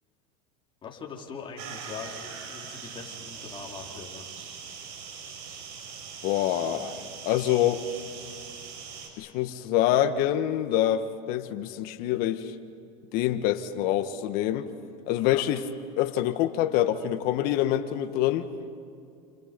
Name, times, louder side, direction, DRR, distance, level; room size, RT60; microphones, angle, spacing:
voice 1, 0.8-4.3 15.1-15.4, left 5 dB, 25° left, 0 dB, 4.3 m, -42 dB
sound 1, 1.6-9.1, right 6 dB, 65° right, 5.8 m, -41 dB
voice 2, 6.2-7.9 9.2-12.6 13.1-14.7 15.1-15.6 16.0-18.5, left 12 dB, 55° left, 9 dB, 1.7 m, -26 dB
29.0 x 29.0 x 5.5 m, 2.5 s
supercardioid pair, 110°, 18 cm